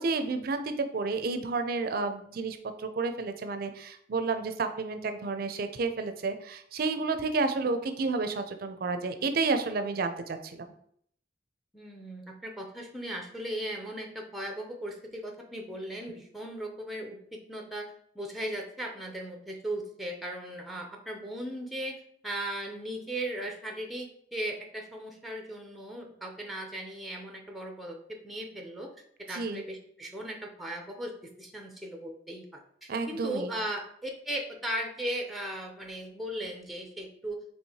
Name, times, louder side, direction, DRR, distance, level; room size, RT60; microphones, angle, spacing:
voice 1, 0.0-10.7 29.3-29.6 32.9-33.5, right 3 dB, 55° right, 8 dB, 0.4 m, -31 dB
voice 2, 11.7-28.9 29.3-31.1 31.4-37.4, right 1 dB, ahead, 1 dB, 0.5 m, -37 dB
4.5 x 3.3 x 2.8 m, 0.65 s
head